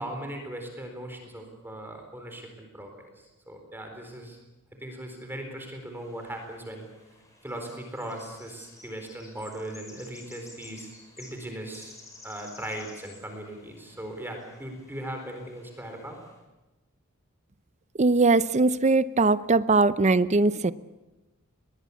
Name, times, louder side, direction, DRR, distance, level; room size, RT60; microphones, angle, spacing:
voice 1, 0.0-2.9 3.2-4.4 4.8-6.9 7.4-12.0 12.2-16.2, right 1 dB, 10° right, 4 dB, 4.2 m, -38 dB
sound 1, 5.8-16.4, left 2 dB, 15° left, 5.8 m, -53 dB
voice 2, 18.0-20.7, right 3 dB, 35° right, 15 dB, 0.7 m, -21 dB
23.0 x 20.0 x 8.3 m, 1.1 s
head